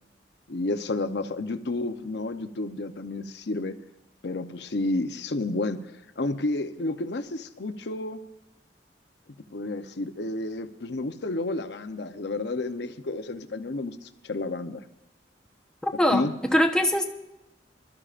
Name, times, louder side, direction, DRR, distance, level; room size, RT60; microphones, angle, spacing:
voice 1, 0.5-3.8 4.2-8.2 9.5-14.8 16.1-16.3, left 2 dB, 70° left, 9 dB, 0.7 m, -31 dB
voice 2, 15.8-17.0, left 1 dB, 5° left, 3 dB, 1.0 m, -23 dB
25.0 x 12.5 x 2.5 m, 0.92 s
head